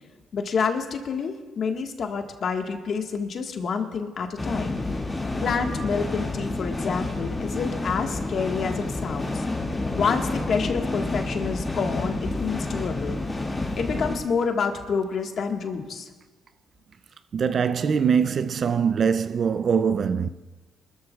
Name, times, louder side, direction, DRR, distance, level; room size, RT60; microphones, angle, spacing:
voice 1, 0.3-4.8 5.4-9.4 9.9-13.2 13.8-16.1, left 5 dB, 55° left, 1.5 m, -28 dB
sound 1, 4.4-14.2, left 2 dB, 20° left, 2.2 m, -29 dB
voice 2, 17.3-20.3, right 6 dB, 50° right, 0.4 m, -22 dB
26.5 x 13.5 x 2.4 m
cardioid pair, 90°, 0 cm